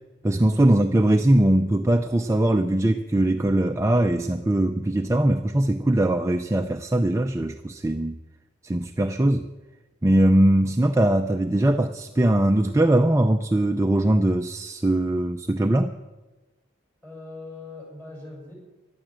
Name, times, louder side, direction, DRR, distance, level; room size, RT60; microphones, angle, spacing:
voice 1, 0.2-8.2 8.6-9.4 10.0-15.9, right 1 dB, 15° right, 5 dB, 0.5 m, -21 dB
voice 2, 17.0-18.5, left 2 dB, 10° left, -1 dB, 6.0 m, -41 dB
14.5 x 11.5 x 7.5 m, 1.1 s
head